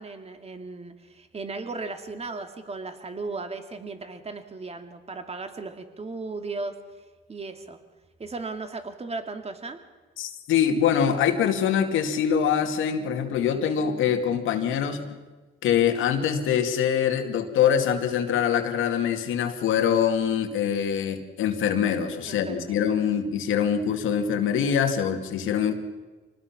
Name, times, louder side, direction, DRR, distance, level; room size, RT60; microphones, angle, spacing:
voice 1, 0.0-6.8 7.3-7.8 8.2-9.8 22.2-22.8, right 3 dB, 30° right, 6 dB, 2.4 m, -36 dB
voice 2, 10.2-15.2 15.6-25.7, left 8 dB, 85° left, 5 dB, 2.3 m, -24 dB
25.5 x 19.5 x 6.0 m, 1.3 s
cardioid pair, 90°, 20 cm